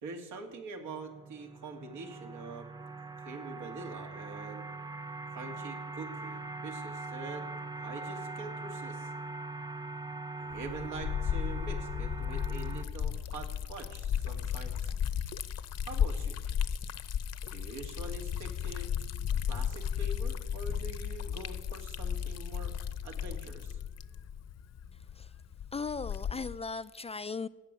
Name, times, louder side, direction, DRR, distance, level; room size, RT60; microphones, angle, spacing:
voice 1, 0.0-2.7 3.2-4.6 5.3-7.4 7.7-9.1 10.3-14.9 15.9-16.4 17.5-18.9 19.5-22.7 23.0-23.8, right 3 dB, 85° right, 2.2 m, -44 dB
sound 1, 0.8-12.8, right 3 dB, 15° right, 0.7 m, -42 dB
Liquid, 10.5-26.6, left 8 dB, 55° left, 0.8 m, -35 dB
voice 2, 25.7-27.5, left 4 dB, 20° left, 0.3 m, -37 dB
14.5 x 6.8 x 8.9 m
cardioid pair, 90°, 30 cm